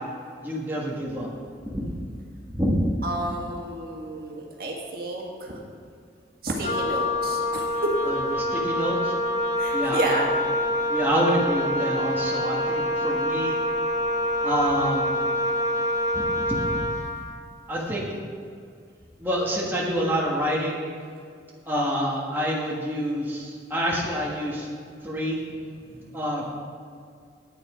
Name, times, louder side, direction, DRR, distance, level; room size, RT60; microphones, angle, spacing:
voice 1, 0.4-1.3 1.7-1.8 2.5-2.9 8.1-9.1 9.7-10.3 10.9-13.6 14.4-15.1 16.1-16.8 17.7-18.2 19.2-20.8 21.7-24.7 25.0-25.4 26.1-26.6, equal, 10° right, -5 dB, 1.4 m, -27 dB
voice 2, 3.0-5.6 6.4-7.9 9.6-10.4 25.8-26.2, right 1 dB, 55° right, -1 dB, 1.9 m, -31 dB
Wind instrument woodwind instrument, 6.6-17.2, left 1 dB, 40° left, 1.2 m, -26 dB
10.5 x 9.3 x 4.9 m, 2.3 s
head